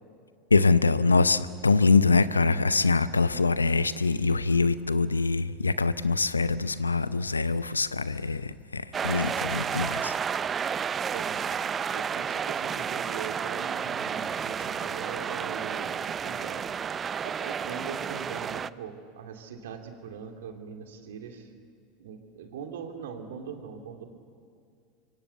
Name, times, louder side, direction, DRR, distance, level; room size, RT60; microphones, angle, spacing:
voice 1, 0.5-10.1, left 4 dB, 90° left, 16 dB, 0.7 m, -24 dB
sound 1, 8.9-18.7, right 7 dB, 30° right, 0.6 m, -31 dB
voice 2, 11.1-11.6 11.9-16.6 17.2-21.5 22.0-24.1, right 6 dB, 70° right, 5 dB, 2.7 m, -41 dB
24.5 x 24.5 x 8.2 m, 2.3 s
figure-of-eight pair, 80°, 0 cm